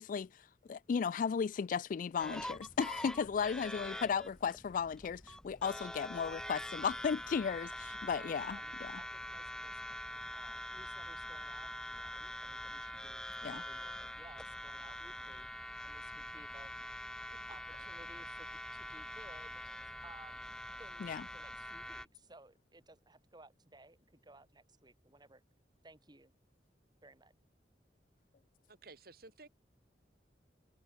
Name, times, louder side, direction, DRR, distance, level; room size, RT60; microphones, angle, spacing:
voice 1, 0.0-9.0 13.4-13.6 21.0-21.2, left 6 dB, 50° left, 0.3 m, -35 dB
sound 1, 2.2-22.1, left 1 dB, 5° left, 1.2 m, -45 dB
voice 2, 2.2-2.6 8.1-13.2 13.5-15.5 15.8-16.7 17.5-20.5 20.8-21.1 21.3-25.4 25.8-26.4 27.0-27.3, right 2 dB, 25° right, 3.3 m, -59 dB
voice 3, 28.7-29.5, right 3 dB, 60° right, 2.2 m, -54 dB
head